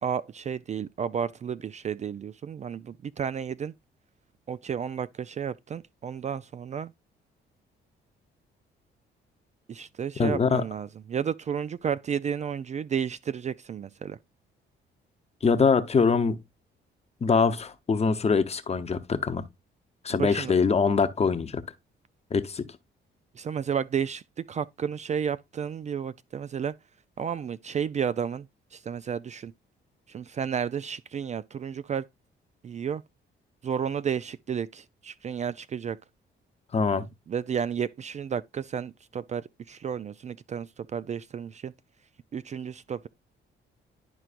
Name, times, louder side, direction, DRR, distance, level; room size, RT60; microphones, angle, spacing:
voice 1, 0.0-3.7 4.5-6.9 9.7-14.2 20.1-20.5 23.3-26.7 27.2-29.5 30.1-32.0 32.6-33.0 33.6-36.0 37.3-41.7 42.3-43.1, right 7 dB, 35° right, 0.3 m, -32 dB
voice 2, 10.2-10.6 15.4-16.4 17.2-19.4 20.0-21.6 22.3-22.7 36.7-37.1, left 5 dB, 30° left, 0.8 m, -23 dB
11.0 x 4.5 x 2.5 m
cardioid pair, 90°, 20 cm